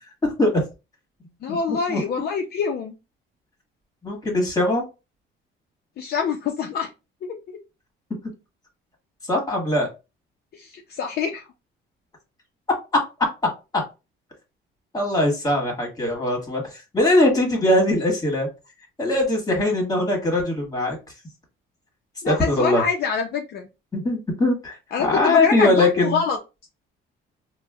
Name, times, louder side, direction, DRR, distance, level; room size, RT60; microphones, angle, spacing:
voice 1, 0.2-0.6 1.5-1.6 1.9-2.0 4.0-4.8 9.3-9.9 14.9-16.6 16.9-18.5 19.0-21.0 22.2-22.8 23.9-26.2, left 1 dB, 20° left, 1 dB, 1.4 m, -21 dB
voice 2, 1.4-2.9 6.0-6.9 10.5-11.4 22.2-23.7 24.9-26.4, left 6 dB, 50° left, 2 dB, 0.5 m, -25 dB
4.2 x 2.1 x 2.3 m, 0.28 s
cardioid pair, 125°, 21 cm